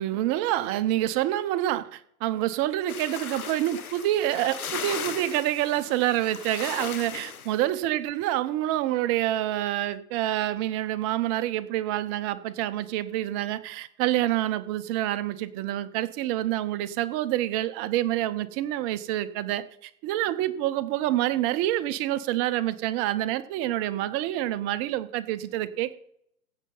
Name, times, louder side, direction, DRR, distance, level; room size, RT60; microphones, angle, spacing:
voice 1, 0.0-26.0, right 14 dB, 30° right, 13 dB, 0.9 m, -27 dB
sound 1, 2.9-7.6, left 7 dB, 75° left, 1.4 m, -37 dB
16.0 x 6.7 x 5.6 m, 0.70 s
figure-of-eight pair, 105°, 43 cm